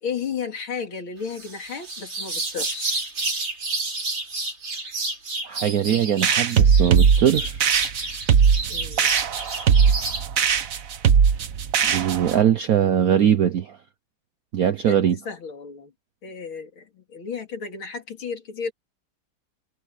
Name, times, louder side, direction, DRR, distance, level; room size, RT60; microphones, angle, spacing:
voice 1, 0.0-3.0 8.7-9.1 14.9-15.9 16.2-18.7, left 6 dB, 70° left, 3.7 m, -33 dB
sound 1, 1.3-10.2, right 3 dB, 85° right, 7.2 m, -30 dB
voice 2, 5.4-7.6 11.8-13.8 14.5-15.2, right 9 dB, 70° right, 0.9 m, -21 dB
sound 2, 6.2-12.4, right 7 dB, 50° right, 1.2 m, -19 dB
omnidirectional pair, 2.3 m